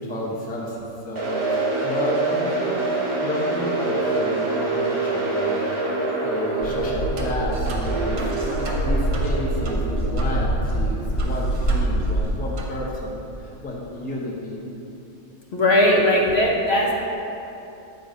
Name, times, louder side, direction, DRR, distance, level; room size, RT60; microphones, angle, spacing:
voice 1, 0.0-2.9 3.2-5.9 6.2-8.3 8.6-14.6, left 1 dB, 10° left, -3 dB, 0.6 m, -31 dB
sound 1, 1.1-11.2, right 2 dB, 25° right, 1.0 m, -26 dB
sound 2, 6.6-12.2, right 1 dB, 90° left, 2.0 m, -25 dB
sound 3, 6.7-6.9 7.2-10.4 10.7-10.8 11.2-12.3 12.6-12.8, right 1 dB, 65° right, 1.3 m, -37 dB
voice 2, 15.5-16.9, left 1 dB, 55° left, -2 dB, 1.0 m, -18 dB
8.3 x 4.1 x 5.1 m, 2.9 s
omnidirectional pair, 1.5 m